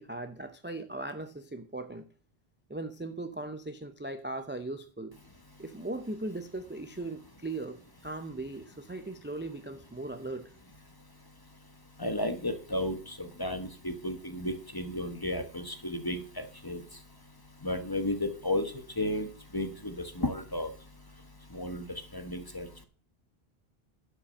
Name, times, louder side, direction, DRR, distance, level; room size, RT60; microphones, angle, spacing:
voice 1, 0.0-2.1 2.7-5.1 5.6-10.5, right 2 dB, 15° right, 8 dB, 0.6 m, -38 dB
voice 2, 12.0-16.8 17.6-19.3 19.5-20.7 21.5-21.9 22.1-22.8, left 1 dB, 20° left, 9 dB, 1.1 m, -33 dB
11.5 x 6.0 x 6.4 m, 0.41 s
omnidirectional pair, 1.0 m